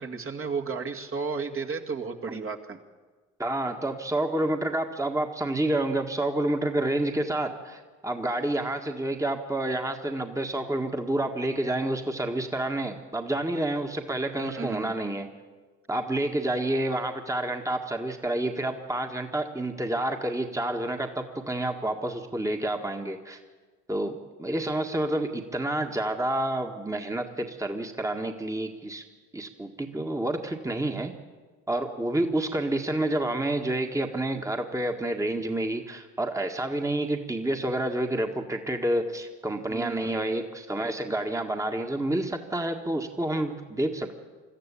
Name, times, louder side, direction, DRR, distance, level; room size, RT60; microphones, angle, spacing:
voice 1, 0.0-2.8 14.4-14.9 39.7-40.1, right 5 dB, 40° right, 2 dB, 2.2 m, -33 dB
voice 2, 3.4-15.3 15.9-23.4 23.9-29.0 29.3-31.1 31.7-44.2, right 1 dB, 10° right, 4 dB, 1.8 m, -29 dB
22.0 x 14.0 x 8.6 m, 1.4 s
hypercardioid pair, 55°, 34 cm